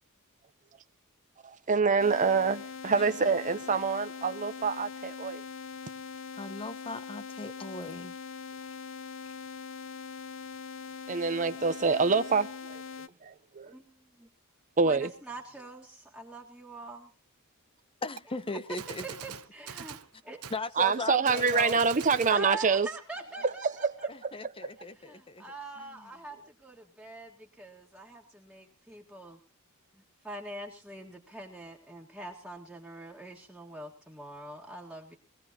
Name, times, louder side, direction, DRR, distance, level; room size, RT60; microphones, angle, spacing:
voice 1, 1.4-5.4 11.1-12.8 13.2-13.7 14.8-15.1 20.8-22.9 23.4-24.7, right 5 dB, 35° right, 0.7 m, -26 dB
sound 1, 2.0-13.1, left 6 dB, 65° left, 0.8 m, -42 dB
voice 2, 6.4-8.2 18.0-19.2 20.5-21.8 22.1-22.2 24.1-26.1, left 3 dB, 25° left, 0.8 m, -38 dB
voice 3, 13.7-14.3 14.8-17.1 19.0-20.0 20.2-20.4 22.3-24.1 25.0-29.4 29.9-35.2, right 2 dB, 5° right, 1.7 m, -44 dB
Gunshot gunfire, 18.2-18.3 18.8-20.1 20.4-20.6 21.2-22.4, right 8 dB, 80° right, 1.0 m, -43 dB
21.5 x 17.0 x 2.9 m
head